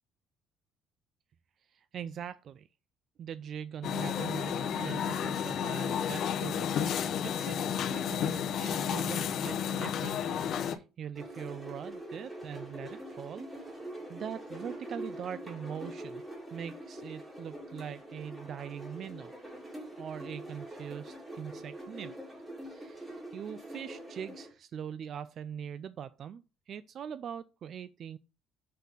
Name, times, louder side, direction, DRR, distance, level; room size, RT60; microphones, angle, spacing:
voice 1, 1.7-2.7 3.2-13.5 14.1-16.2 16.5-19.3 20.0-22.1 22.6-28.2, right 8 dB, 45° right, 0.3 m, -42 dB
sound 1, 3.8-10.7, left 8 dB, 55° left, 0.8 m, -32 dB
sound 2, 11.1-24.5, right 1 dB, 10° right, 2.4 m, -44 dB
6.3 x 4.1 x 5.4 m
cardioid pair, 135°, 0 cm